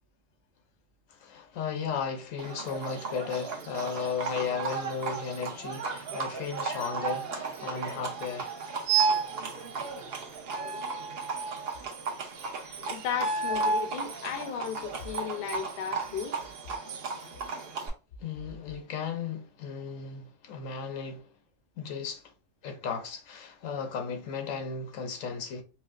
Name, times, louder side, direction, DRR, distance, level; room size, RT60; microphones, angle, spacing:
voice 1, 1.1-8.5 11.4-11.5 18.2-21.3 21.8-22.3 22.6-25.6, left 6 dB, 90° left, 1.1 m, -35 dB
Livestock farm animals working animals, 2.4-17.9, right 5 dB, 55° right, 0.9 m, -36 dB
sound 1, 8.9-9.4 10.5-11.8 13.1-14.0, right 4 dB, 75° right, 1.1 m, -28 dB
voice 2, 12.8-16.4, left 8 dB, 60° left, 0.7 m, -35 dB
4.5 x 2.0 x 2.4 m
omnidirectional pair, 1.3 m